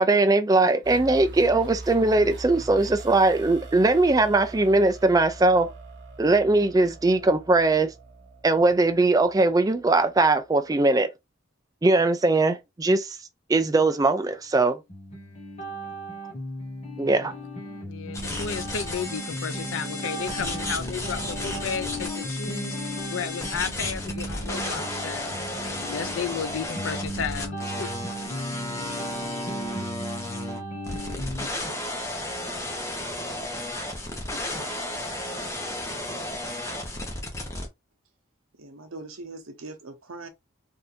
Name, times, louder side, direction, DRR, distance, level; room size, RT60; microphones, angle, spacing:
voice 1, 0.0-5.7 6.2-7.9 8.4-11.1 11.8-13.2 13.5-14.8 17.0-17.3, right 2 dB, 15° right, 0.3 m, -20 dB
sound 1, 0.8-10.4, right 3 dB, 55° right, 0.9 m, -42 dB
sound 2, 14.9-31.5, equal, 30° left, 1.3 m, -36 dB
voice 2, 17.9-27.9, left 6 dB, 70° left, 0.4 m, -33 dB
sound 3, 18.1-37.7, left 1 dB, 15° left, 0.8 m, -33 dB
voice 3, 38.6-40.3, right 2 dB, 85° right, 0.9 m, -41 dB
3.5 x 2.6 x 2.7 m
head